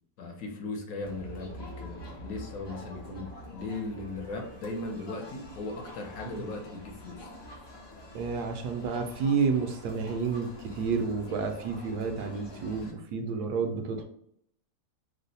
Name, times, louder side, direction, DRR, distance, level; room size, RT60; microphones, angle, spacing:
voice 1, 0.2-7.3, left 2 dB, 65° left, 1 dB, 1.1 m, -38 dB
Crowd, 1.0-12.9, left 1 dB, 35° left, 0.4 m, -46 dB
voice 2, 8.1-14.0, right 5 dB, 85° right, 5 dB, 1.2 m, -30 dB
3.1 x 2.1 x 4.0 m, 0.71 s
omnidirectional pair, 1.7 m